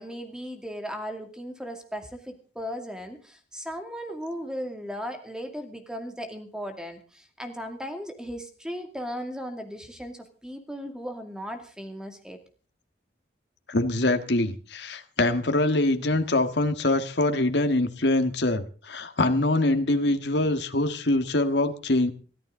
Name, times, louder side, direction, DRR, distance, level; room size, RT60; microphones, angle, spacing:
voice 1, 0.0-12.4, equal, 5° right, 6 dB, 2.4 m, -37 dB
voice 2, 13.7-22.1, left 2 dB, 65° left, 8 dB, 1.7 m, -24 dB
23.0 x 14.0 x 3.8 m, 0.38 s
head